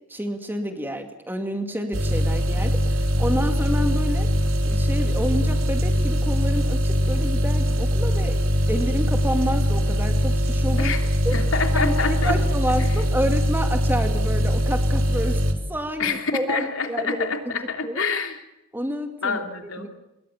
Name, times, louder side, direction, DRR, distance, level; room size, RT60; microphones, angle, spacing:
voice 1, 0.1-4.3 4.6-8.4 8.7-11.0 11.2-11.4 11.7-15.4 15.7-17.5 17.8-18.0 18.7-19.4 19.8-19.9, equal, 10° right, 6 dB, 2.3 m, -29 dB
sound 1, 1.9-15.5, equal, 65° right, 3.8 m, -22 dB
voice 2, 11.3-12.4 16.0-18.4 19.2-19.9, left 4 dB, 65° left, 5 dB, 3.2 m, -27 dB
27.5 x 22.0 x 7.2 m, 0.92 s
head